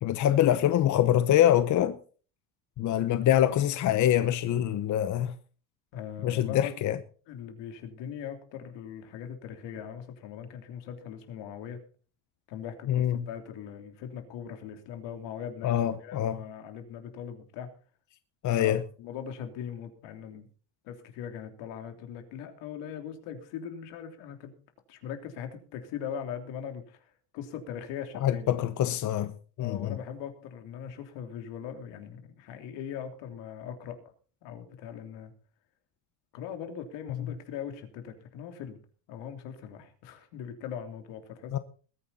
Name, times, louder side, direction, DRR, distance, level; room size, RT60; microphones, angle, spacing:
voice 1, 0.0-2.0 2.8-5.3 6.2-7.0 12.9-13.3 15.6-16.4 18.4-18.8 28.2-30.0 41.5-41.6, left 11 dB, 40° left, 0.9 m, -25 dB
voice 2, 5.9-6.7 7.3-11.8 12.5-17.7 18.5-20.5 20.8-24.5 24.9-27.0 27.3-28.5 29.6-34.0 34.4-35.3 36.3-38.8 39.1-41.6, left 8 dB, 75° left, 3.2 m, -40 dB
21.0 x 9.8 x 4.2 m
cardioid pair, 135°, 44 cm